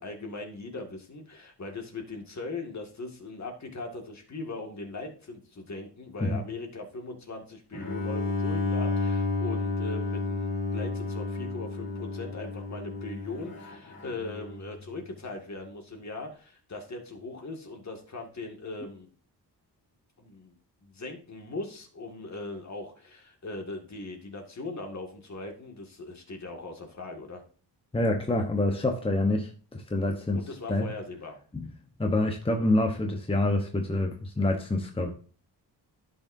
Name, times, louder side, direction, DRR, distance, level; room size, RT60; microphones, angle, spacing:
voice 1, 0.0-19.1 20.2-20.6 20.8-27.4 30.3-31.4, left 3 dB, 40° left, 2 dB, 2.1 m, -39 dB
Bowed string instrument, 7.7-14.7, left 3 dB, 55° left, 3.0 m, -31 dB
voice 2, 27.9-30.4 30.7-30.9 31.5-31.7 32.0-35.1, left 2 dB, 15° left, 3 dB, 1.0 m, -27 dB
14.5 x 6.3 x 2.7 m, 0.42 s
wide cardioid pair, 140°, 40 cm